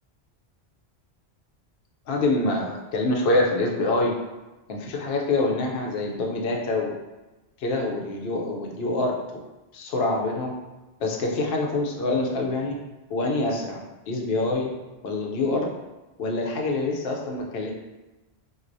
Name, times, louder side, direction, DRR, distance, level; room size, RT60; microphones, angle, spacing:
voice 1, 2.1-4.1 4.7-7.0 7.6-9.1 9.7-10.5 11.0-12.7 13.1-13.8 14.1-14.7 15.0-15.7 16.2-17.7, left 2 dB, 70° left, 0 dB, 0.8 m, -25 dB
4.5 x 2.3 x 2.6 m, 1.1 s
omnidirectional pair, 1.1 m